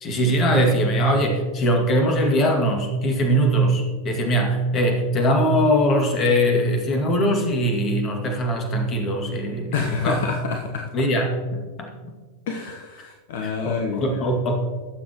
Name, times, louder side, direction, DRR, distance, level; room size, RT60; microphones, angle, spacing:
voice 1, 0.0-10.2 10.9-12.1 13.4-14.5, equal, 30° left, 2 dB, 2.1 m, -21 dB
voice 2, 9.7-10.9 12.5-14.2, left 5 dB, 55° left, 4 dB, 0.9 m, -28 dB
19.5 x 7.3 x 3.0 m, 1.4 s
figure-of-eight pair, 90°, 0 cm